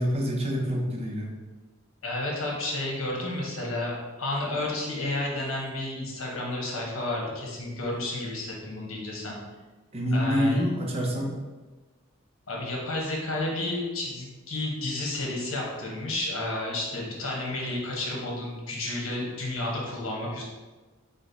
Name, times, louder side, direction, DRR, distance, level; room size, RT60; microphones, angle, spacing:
voice 1, 0.0-1.3 9.9-11.3, equal, 30° right, 0 dB, 0.6 m, -26 dB
voice 2, 2.0-9.4 10.1-10.6 12.5-20.4, left 2 dB, 80° left, -2 dB, 1.1 m, -31 dB
5.0 x 2.2 x 3.9 m, 1.3 s
head